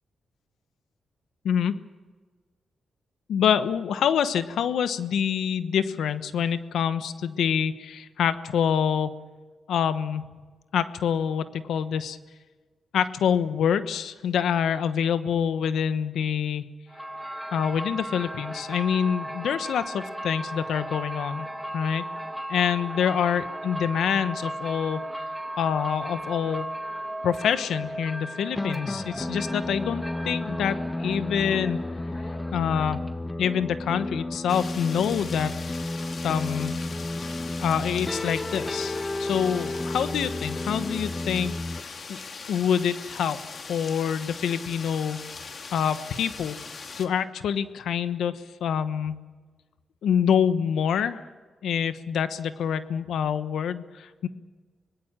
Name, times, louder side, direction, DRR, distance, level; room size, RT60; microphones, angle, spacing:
voice 1, 1.4-1.8 3.3-9.2 9.7-10.2 10.7-12.2 12.9-16.6 17.5-21.5 21.7-22.0 22.5-25.0 25.6-26.7 27.2-31.8 32.5-33.0 33.4-35.6 36.2-36.8 37.6-42.2 42.5-43.4 43.7-45.3 45.7-46.6 47.0-49.2 50.0-51.2 51.6-54.3, left 8 dB, 80° left, 12 dB, 1.1 m, -26 dB
sound 1, 16.9-33.3, right 1 dB, ahead, 2.2 m, -36 dB
sound 2, 28.5-41.8, left 2 dB, 25° left, 1.2 m, -32 dB
sound 3, 34.5-47.1, left 4 dB, 55° left, 2.5 m, -40 dB
25.0 x 19.5 x 7.4 m, 1.4 s
cardioid pair, 65°, 0 cm